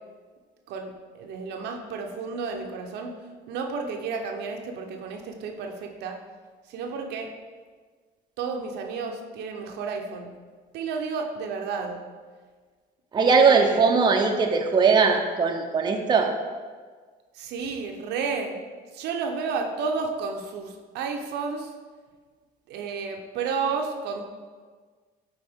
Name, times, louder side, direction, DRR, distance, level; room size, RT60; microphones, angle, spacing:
voice 1, 0.7-3.1 3.5-6.2 6.7-7.3 8.4-10.3 10.7-12.0 13.4-13.8 17.3-18.5 18.9-21.7 22.7-24.3, right 5 dB, 80° right, 3 dB, 0.8 m, -31 dB
voice 2, 13.1-16.3, right 5 dB, 25° right, 2 dB, 0.6 m, -20 dB
7.9 x 4.4 x 3.6 m, 1.5 s
cardioid pair, 110°, 17 cm